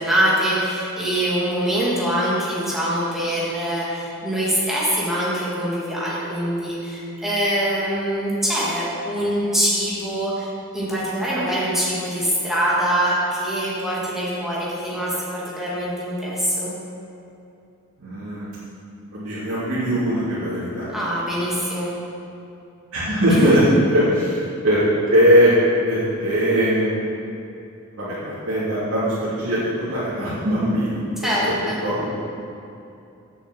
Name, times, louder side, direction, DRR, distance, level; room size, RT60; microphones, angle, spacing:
voice 1, 0.0-16.7 20.9-21.9 23.4-23.6 31.2-31.8, equal, ahead, -8 dB, 2.7 m, -24 dB
voice 2, 18.0-18.5 19.1-20.9 22.9-23.6 23.9-25.5 25.8-27.1 27.9-31.0 31.4-32.1, equal, 90° right, -12 dB, 2.9 m, -20 dB
8.2 x 7.2 x 7.6 m, 2.7 s
head